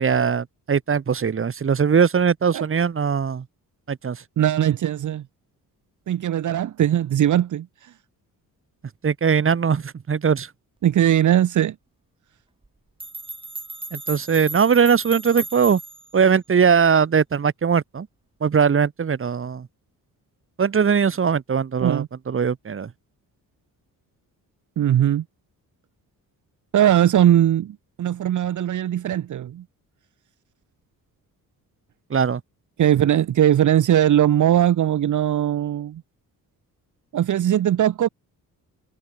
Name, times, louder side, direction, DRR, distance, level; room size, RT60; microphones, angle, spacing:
voice 1, 0.0-3.4 3.9-4.2 9.0-10.5 13.9-15.8 16.1-18.1 18.4-19.7 20.6-22.9 32.1-32.4, right 6 dB, 40° right, 3.6 m, -20 dB
voice 2, 4.4-5.2 6.1-7.9 10.8-11.7 21.8-22.1 24.8-25.2 26.7-29.6 32.8-36.0 37.1-38.1, right 11 dB, 60° right, 1.3 m, -19 dB
sound 1, 12.6-12.7 13.0-16.1, right 2 dB, 15° right, 5.4 m, -35 dB
wide cardioid pair, 150°, 34 cm